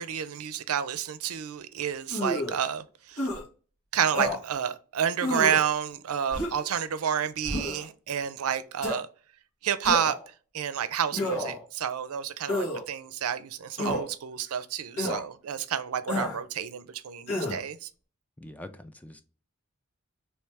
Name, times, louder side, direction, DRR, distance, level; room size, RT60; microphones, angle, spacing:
voice 1, 0.0-3.3 3.9-9.1 9.6-10.2 10.5-17.9, right 8 dB, 80° right, 0.4 m, -30 dB
sound 1, 2.1-2.6 3.2-3.4 4.1-4.4 5.2-5.6 6.3-6.7 7.4-7.8 8.8-9.0 9.8-10.2 11.1-11.6 12.5-12.8 13.8-14.1 15.0-15.2 16.1-16.4 17.3-17.6, left 1 dB, 80° left, 1.6 m, -30 dB
voice 2, 18.4-19.2, left 1 dB, 5° left, 0.3 m, -44 dB
3.2 x 3.1 x 3.4 m
head